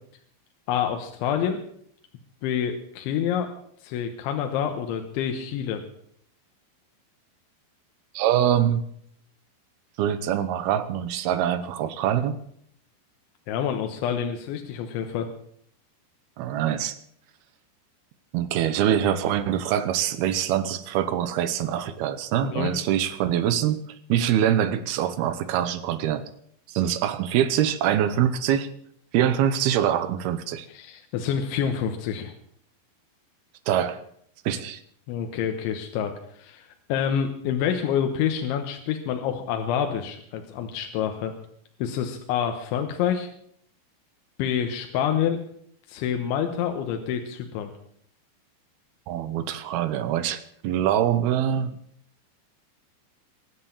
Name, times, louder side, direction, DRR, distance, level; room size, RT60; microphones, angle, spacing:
voice 1, 0.7-1.6 2.4-3.5 3.8-5.8 13.5-15.3 22.4-22.7 30.7-32.3 35.1-41.3 41.8-43.3 44.4-45.4 45.9-47.7, left 8 dB, 85° left, 5 dB, 3.5 m, -27 dB
voice 2, 8.1-8.9 10.0-12.4 16.4-17.0 18.3-23.8 24.1-26.3 26.7-28.7 29.1-30.7 33.7-34.0 34.5-34.8 49.1-51.7, right 10 dB, 75° right, 12 dB, 2.5 m, -24 dB
23.5 x 7.9 x 7.3 m, 0.67 s
omnidirectional pair, 5.2 m